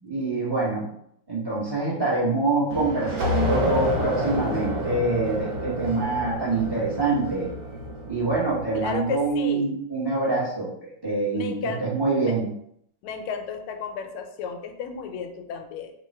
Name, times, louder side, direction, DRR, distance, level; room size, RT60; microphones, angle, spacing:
voice 1, 0.0-0.9 1.3-7.5 8.1-10.7 11.0-12.5, right 3 dB, 25° right, -8 dB, 0.5 m, -25 dB
sound 1, 2.7-9.1, equal, 55° right, 1.4 m, -29 dB
voice 2, 8.7-9.7 11.3-11.8 12.2-12.3 13.0-15.9, left 6 dB, 85° left, 5 dB, 1.5 m, -33 dB
3.6 x 2.3 x 4.1 m, 0.70 s
omnidirectional pair, 2.3 m